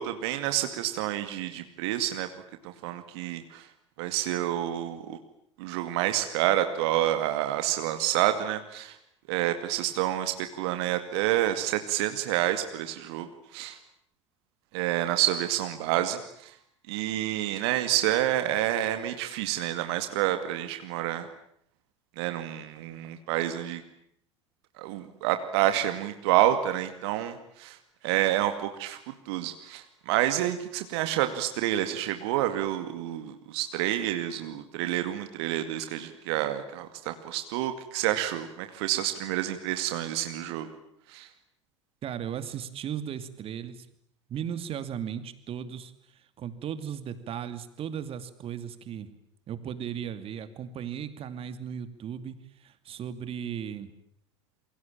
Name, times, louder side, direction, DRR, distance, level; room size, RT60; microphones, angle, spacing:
voice 1, 0.0-2.3 2.6-3.7 4.0-5.2 5.6-9.0 9.3-13.3 13.5-13.8 14.7-16.5 16.9-21.3 22.2-23.8 24.8-27.8 28.0-29.0 29.3-40.7 41.1-41.3, right 13 dB, 60° right, 8 dB, 2.3 m, -28 dB
voice 2, 42.0-43.9 44.3-49.1 49.5-53.9, right 8 dB, 40° right, 12 dB, 2.6 m, -36 dB
28.0 x 23.5 x 8.9 m, 0.70 s
figure-of-eight pair, 75°, 15 cm